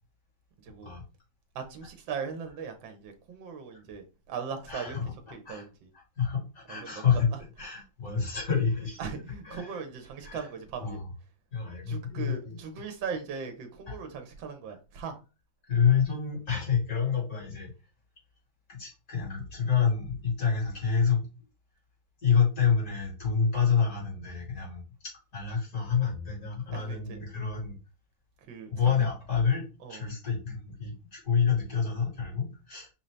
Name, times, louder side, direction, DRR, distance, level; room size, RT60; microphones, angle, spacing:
voice 1, 0.6-0.9 1.5-5.9 6.7-7.2 9.0-11.0 11.9-15.2 26.7-27.2 28.5-29.1 29.8-30.1, right 6 dB, 85° right, 1.5 m, -39 dB
voice 2, 4.7-5.0 5.4-5.6 6.2-7.3 7.6-9.0 9.4-9.7 10.2-10.4 10.8-11.0 11.5-12.6 13.9-14.0 15.7-17.7 18.7-21.3 22.2-24.8 25.3-27.8 28.7-29.6 29.9-32.9, left 6 dB, 50° left, 3.0 m, -28 dB
5.5 x 2.7 x 3.2 m
omnidirectional pair, 2.0 m